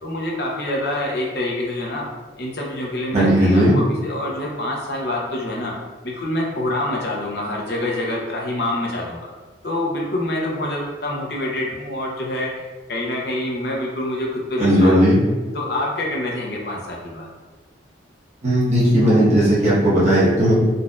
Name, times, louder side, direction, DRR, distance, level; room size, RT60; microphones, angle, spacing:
voice 1, 0.0-2.1 2.4-5.7 6.0-9.3 9.6-15.0 15.5-17.3, left 1 dB, 60° left, -2 dB, 0.7 m, -26 dB
voice 2, 3.1-3.7 14.6-15.2 18.4-20.5, equal, 40° right, -9 dB, 1.0 m, -16 dB
4.0 x 2.5 x 2.3 m, 1.3 s
head